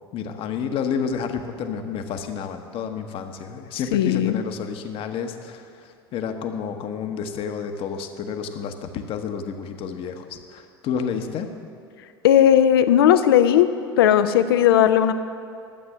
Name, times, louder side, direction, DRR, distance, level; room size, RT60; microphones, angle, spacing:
voice 1, 0.1-11.5, left 6 dB, 45° left, 7 dB, 1.0 m, -30 dB
voice 2, 3.9-4.4 12.2-13.7 14.0-15.1, left 10 dB, 65° left, 11 dB, 0.6 m, -16 dB
12.5 x 8.0 x 6.3 m, 2.5 s
figure-of-eight pair, 70°, 13 cm